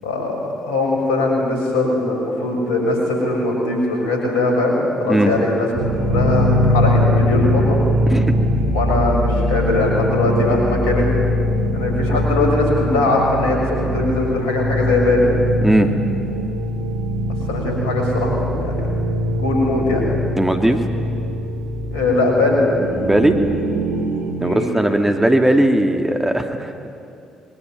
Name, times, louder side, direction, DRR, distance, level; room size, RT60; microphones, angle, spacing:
voice 1, 0.0-7.8 8.6-11.0 11.7-15.3 17.5-18.8 19.3-20.1 21.9-22.6 24.3-24.8, left 2 dB, 80° left, 0 dB, 6.5 m, -20 dB
sound 1, 5.7-24.3, equal, 65° right, 4.1 m, -21 dB
voice 2, 8.1-8.4 15.6-15.9 20.4-20.8 23.0-23.3 24.4-26.9, right 1 dB, 10° right, 5 dB, 2.9 m, -17 dB
26.0 x 23.5 x 9.5 m, 2.6 s
hypercardioid pair, 45°, 3 cm